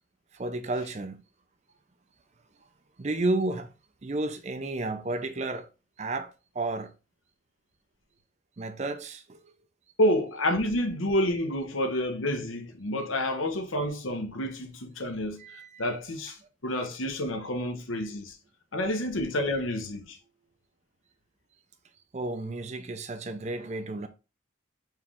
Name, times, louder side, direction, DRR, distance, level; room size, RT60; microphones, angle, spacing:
voice 1, 0.3-1.2 3.0-3.7 4.0-5.7 6.0-6.9 8.6-9.5 15.4-15.8 22.1-24.1, right 2 dB, 35° right, 0.5 m, -32 dB
voice 2, 10.0-16.4 16.6-18.4 18.7-20.2, left 1 dB, 80° left, 1.0 m, -29 dB
4.7 x 3.2 x 3.6 m
head